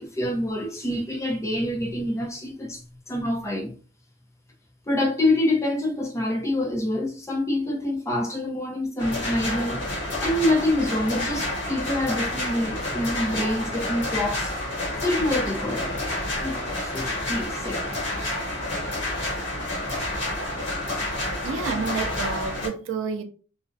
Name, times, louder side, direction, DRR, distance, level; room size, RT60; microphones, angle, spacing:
voice 1, 0.0-3.7 4.9-9.8 10.2-14.5 15.0-17.8, left 1 dB, 15° left, 0.6 m, -26 dB
sound 1, 9.0-22.7, left 1 dB, 70° left, 1.1 m, -29 dB
voice 2, 21.4-23.2, right 5 dB, 80° right, 0.4 m, -29 dB
2.4 x 2.0 x 2.5 m
head